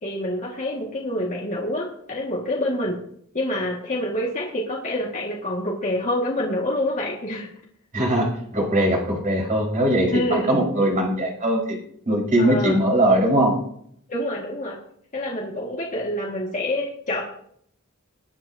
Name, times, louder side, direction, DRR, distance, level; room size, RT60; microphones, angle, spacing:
voice 1, 0.0-3.0 3.3-7.5 10.1-10.7 12.4-12.8 14.1-14.8 15.1-17.2, left 1 dB, 35° left, -3 dB, 1.9 m, -27 dB
voice 2, 7.9-11.8 12.0-13.6, right 1 dB, 40° right, -1 dB, 4.8 m, -21 dB
21.5 x 10.0 x 2.8 m, 0.67 s
head